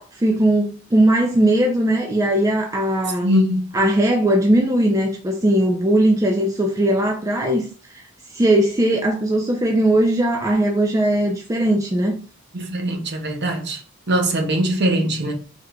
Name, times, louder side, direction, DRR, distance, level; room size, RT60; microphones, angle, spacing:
voice 1, 0.2-3.3 3.7-7.6 7.9-8.0 8.3-12.1, right 1 dB, 15° right, 0.4 m, -19 dB
voice 2, 3.2-3.6 12.5-13.8 14.1-15.3, right 1 dB, 50° right, 0.7 m, -21 dB
3.5 x 3.1 x 2.3 m
head